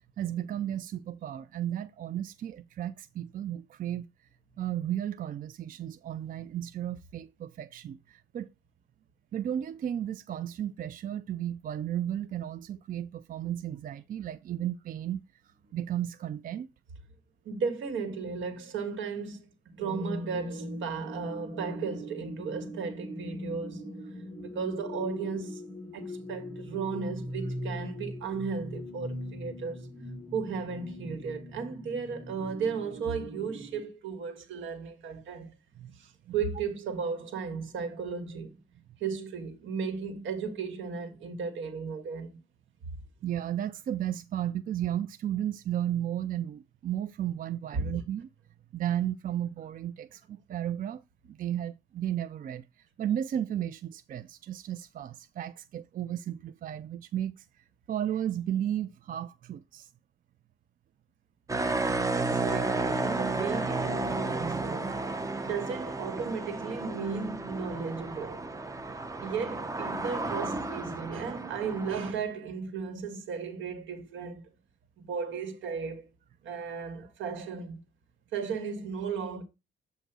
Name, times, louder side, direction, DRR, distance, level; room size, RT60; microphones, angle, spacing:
voice 1, 0.2-4.1 4.6-8.5 9.3-16.7 35.8-35.9 36.3-36.4 43.2-48.3 48.7-51.0 51.3-57.5 57.9-59.9 62.2-62.3, right 11 dB, 45° right, 0.4 m, -34 dB
voice 2, 17.5-19.4 19.8-25.6 25.9-29.9 30.3-35.5 36.0-38.6 39.0-42.4 47.7-48.0 62.2-65.0 65.4-68.4 69.2-74.4 75.0-76.1 76.4-77.8 78.3-79.4, right 5 dB, 75° right, 1.7 m, -35 dB
sound 1, 19.8-33.8, equal, 10° left, 1.8 m, -40 dB
sound 2, 61.5-72.1, right 3 dB, 15° right, 0.7 m, -32 dB
7.8 x 2.7 x 6.0 m
cardioid pair, 90°, 20 cm